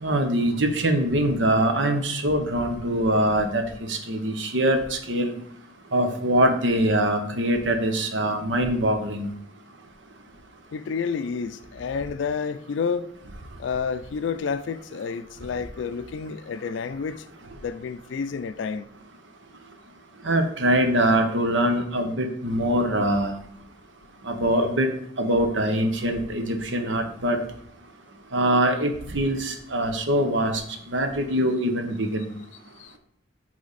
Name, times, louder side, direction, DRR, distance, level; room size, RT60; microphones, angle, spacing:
voice 1, 0.0-3.6 3.9-5.3 5.9-9.3 20.2-23.3 24.3-24.9 25.2-27.4 28.3-30.6 30.9-32.3, right 1 dB, 80° right, 0.9 m, -23 dB
voice 2, 10.7-13.1 13.6-17.3 17.6-18.9 32.8-32.9, left 5 dB, 90° left, 0.4 m, -30 dB
8.3 x 3.4 x 4.0 m
head